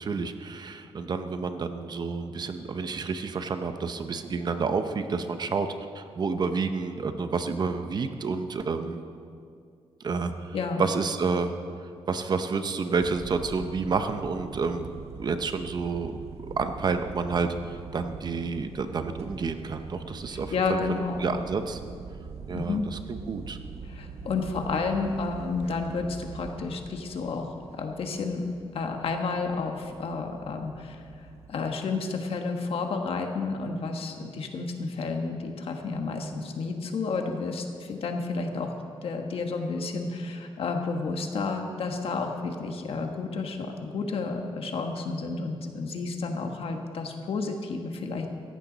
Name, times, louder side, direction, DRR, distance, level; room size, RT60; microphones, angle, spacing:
voice 1, 0.0-5.7 5.9-9.0 10.0-11.5 12.1-14.9 15.2-16.1 16.6-21.8 22.5-23.0 23.3-23.6, right 4 dB, 40° right, 8 dB, 0.7 m, -29 dB
voice 2, 10.5-10.8 20.3-21.3 22.5-22.8 23.9-28.5 28.7-31.0 31.5-38.8 39.0-48.3, left 4 dB, 65° left, 4 dB, 1.4 m, -31 dB
sound 1, 13.0-31.5, right 5 dB, 80° right, 1.0 m, -44 dB
17.0 x 14.5 x 4.0 m, 2.3 s
wide cardioid pair, 160°, 11 cm